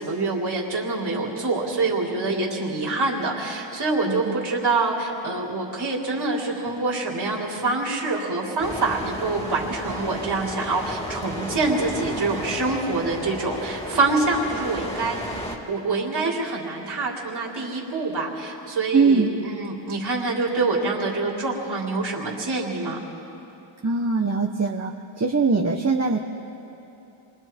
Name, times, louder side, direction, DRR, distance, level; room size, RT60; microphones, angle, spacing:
voice 1, 0.0-23.0, right 3 dB, 55° right, -4 dB, 3.6 m, -26 dB
voice 2, 4.1-4.5 18.9-19.3 23.8-24.9 25.2-26.2, right 4 dB, 30° right, 1 dB, 1.4 m, -21 dB
sound 1, 8.6-15.6, equal, 10° left, 3.0 m, -33 dB
27.0 x 22.5 x 4.6 m, 3.0 s
cardioid pair, 55°, 48 cm